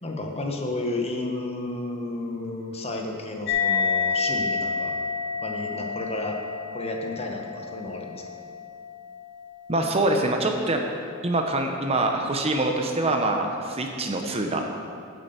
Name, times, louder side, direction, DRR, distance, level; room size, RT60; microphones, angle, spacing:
voice 1, 0.0-4.9 5.4-6.4 6.7-8.2, left 2 dB, 30° left, 2 dB, 1.1 m, -32 dB
sound 1, 3.5-10.4, left 5 dB, 55° left, 1.7 m, -29 dB
voice 2, 9.7-10.8 11.2-14.6, right 2 dB, 25° right, 3 dB, 0.8 m, -24 dB
9.9 x 7.7 x 6.8 m, 2.4 s
head